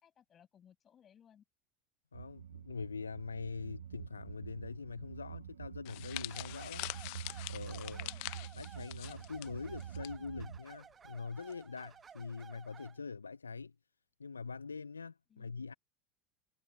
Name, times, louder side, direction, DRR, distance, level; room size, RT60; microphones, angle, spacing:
voice 1, 0.0-1.4 7.8-8.5 15.3-15.5, left 9 dB, 35° left, 6.6 m, -63 dB
voice 2, 2.1-6.9 7.5-8.1 8.5-13.7 14.2-15.7, left 4 dB, 85° left, 0.9 m, -44 dB
sound 1, 2.1-10.6, right 9 dB, 75° right, 0.5 m, -47 dB
sound 2, 5.8-10.1 10.4-10.6 11.5-11.8, left 32 dB, 60° left, 0.9 m, -44 dB
sound 3, 6.3-13.0, right 7 dB, 30° right, 1.4 m, -56 dB
figure-of-eight pair, 75°, 0 cm